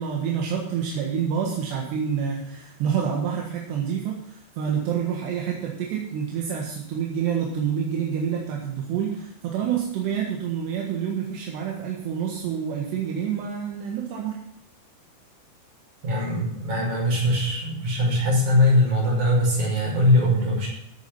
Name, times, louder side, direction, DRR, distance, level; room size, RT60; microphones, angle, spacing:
voice 1, 0.0-14.4, right 7 dB, 75° right, -1 dB, 3.6 m, -28 dB
voice 2, 16.0-20.7, left 1 dB, 45° right, -3 dB, 6.9 m, -21 dB
14.0 x 8.6 x 5.6 m, 0.79 s
omnidirectional pair, 4.9 m